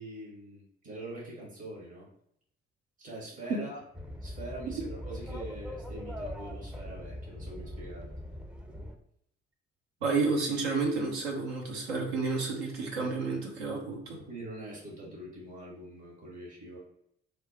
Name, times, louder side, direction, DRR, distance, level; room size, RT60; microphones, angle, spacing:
voice 1, 0.0-2.1 3.0-3.8 4.2-8.1 14.2-16.8, right 1 dB, 55° right, -4 dB, 1.5 m, -43 dB
sound 1, 3.9-9.0, equal, 5° right, 0.5 m, -41 dB
voice 2, 10.0-14.2, right 4 dB, 80° right, -1 dB, 0.8 m, -30 dB
3.3 x 2.2 x 4.0 m, 0.73 s
figure-of-eight pair, 40°, 31 cm